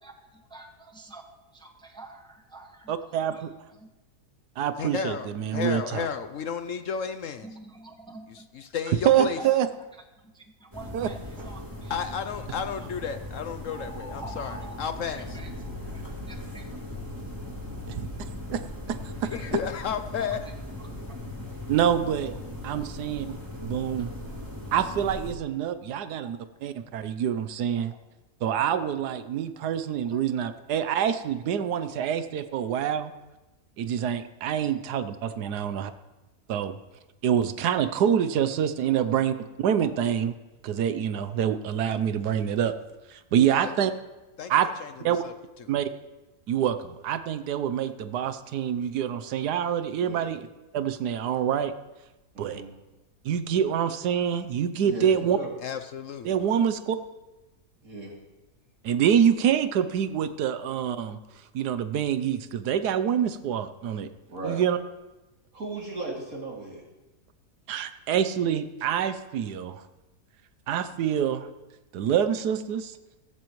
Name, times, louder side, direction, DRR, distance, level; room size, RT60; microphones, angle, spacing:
voice 1, 0.0-1.2 1.5-3.9 5.6-5.7 7.4-8.7 9.4-9.6 10.2-12.0 12.3-12.4 12.7-13.1 14.2-15.5 15.9-16.8 19.2-19.5 20.2-20.3 20.8-21.2 22.7-22.8 24.3-24.5 25.9-26.3 27.7-28.0 29.5-29.7 30.0-30.2 30.8-31.0 34.6-34.7 35.4-35.5 38.9-39.0 39.8-39.9, right 3 dB, 5° left, 3 dB, 1.1 m, -48 dB
voice 2, 2.9-3.5 4.6-6.1 9.0-9.7 10.9-11.1 18.0-18.1 18.5-18.6 18.9-19.3 21.7-22.3 22.6-23.3 23.6-24.1 24.7-26.4 26.6-27.9 28.4-33.1 33.8-35.9 36.5-36.8 37.2-40.3 40.6-42.7 43.1-43.9 44.5-44.7 45.0-45.2 45.7-45.9 46.5-50.5 50.7-51.7 52.4-52.6 53.2-55.4 56.2-57.0 58.8-61.2 61.5-64.1 64.4-64.8 67.7-69.8 70.7-71.5 71.9-73.0, right 9 dB, 90° right, 11 dB, 1.3 m, -26 dB
voice 3, 4.8-7.4 8.6-9.4 11.9-15.4 19.3-20.4 43.5-43.7 44.4-44.5 44.8-44.9 45.2-45.3 45.6-45.7 55.6-56.4, left 7 dB, 65° left, 9 dB, 0.9 m, -32 dB
sound 1, 10.7-25.3, left 1 dB, 15° right, 2.4 m, -38 dB
voice 4, 50.0-50.3 52.3-52.7 54.8-55.1 55.4-55.5 57.8-58.1 64.3-64.6 65.5-66.8, right 3 dB, 60° right, -2 dB, 3.2 m, -36 dB
16.5 x 14.5 x 3.1 m, 1.0 s
omnidirectional pair, 1.7 m